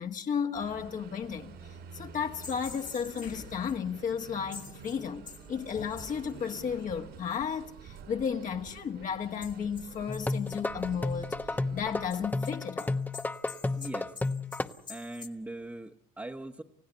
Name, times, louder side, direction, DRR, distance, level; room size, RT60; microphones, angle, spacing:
voice 1, 0.0-1.5 1.9-11.4 11.7-13.0, left 7 dB, 50° left, 1.6 m, -33 dB
sound 1, 0.5-12.3, right 7 dB, 75° right, 5.5 m, -49 dB
sound 2, 2.4-3.7 4.1-4.2 4.5-6.8 9.4-11.1 12.1-15.3, left 6 dB, 25° left, 1.7 m, -48 dB
sound 3, 10.1-14.7, left 2 dB, 10° left, 1.0 m, -32 dB
voice 2, 13.7-14.1 14.9-16.6, right 2 dB, 10° right, 1.2 m, -40 dB
30.0 x 16.0 x 8.2 m
cardioid pair, 110°, 17 cm